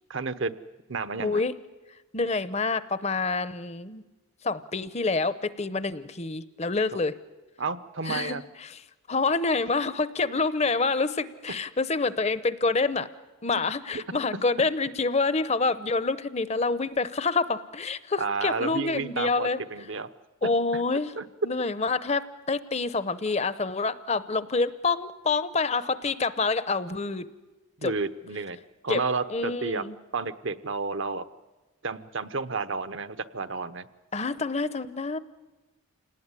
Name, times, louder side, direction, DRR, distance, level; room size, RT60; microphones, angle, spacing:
voice 1, 0.1-0.5 0.9-1.4 7.6-8.4 18.2-20.1 21.2-21.3 27.8-28.6 28.8-29.8 30.1-31.2 31.8-33.9, right 4 dB, 60° right, 11 dB, 0.9 m, -31 dB
voice 2, 1.2-1.5 2.1-4.0 4.4-7.1 8.0-8.8 9.1-13.1 13.4-19.6 20.4-21.1 21.4-27.3 27.8-27.9 28.9-29.0 29.3-29.9 34.1-35.2, left 3 dB, 30° left, 15 dB, 0.8 m, -27 dB
28.0 x 18.5 x 9.8 m, 1.2 s
head